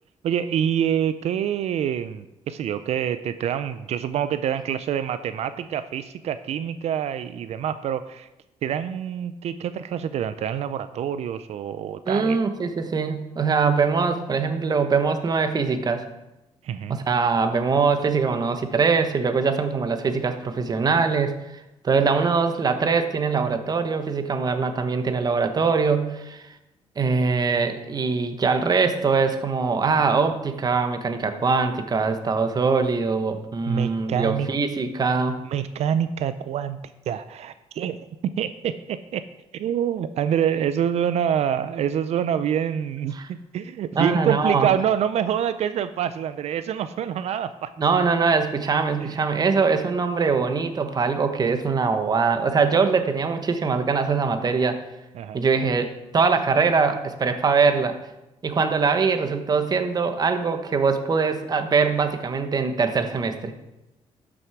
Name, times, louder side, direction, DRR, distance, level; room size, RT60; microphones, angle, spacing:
voice 1, 0.2-8.3 8.6-12.4 16.6-17.0 33.7-34.5 35.5-36.8 37.1-38.1 38.4-39.3 39.5-47.7 49.0-49.3 55.1-55.4, right 9 dB, 65° right, 12 dB, 0.4 m, -26 dB
voice 2, 12.1-16.0 16.9-21.3 21.8-26.5 27.0-35.4 43.2-43.3 43.9-44.7 47.8-54.8 55.3-58.0 58.4-63.5, right 5 dB, 35° right, 8 dB, 1.0 m, -22 dB
12.5 x 6.2 x 4.7 m, 0.95 s
cardioid pair, 120°, 12 cm